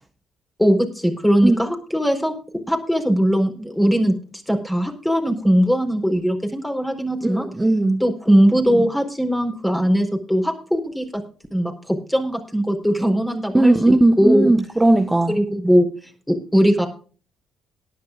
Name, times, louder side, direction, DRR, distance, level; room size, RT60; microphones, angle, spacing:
voice 1, 0.6-2.3 2.7-4.2 4.5-7.5 8.0-11.1 11.5-14.5 15.3-15.9 16.3-16.9, equal, 5° left, 4.2 m, -20 dB
voice 2, 7.2-8.0 13.5-15.3, right 2 dB, 15° right, 1.2 m, -17 dB
18.5 x 11.5 x 2.5 m
hypercardioid pair, 50°, 0 cm